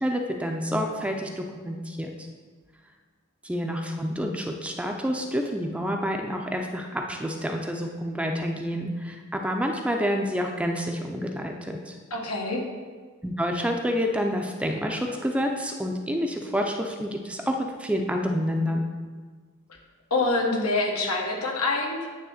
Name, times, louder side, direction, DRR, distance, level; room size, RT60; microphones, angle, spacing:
voice 1, 0.0-2.1 3.4-12.0 13.2-18.8, equal, 5° right, 2 dB, 0.5 m, -28 dB
voice 2, 12.1-12.6 20.1-22.1, left 2 dB, 80° left, 0 dB, 1.4 m, -26 dB
9.3 x 3.6 x 6.5 m, 1.5 s
head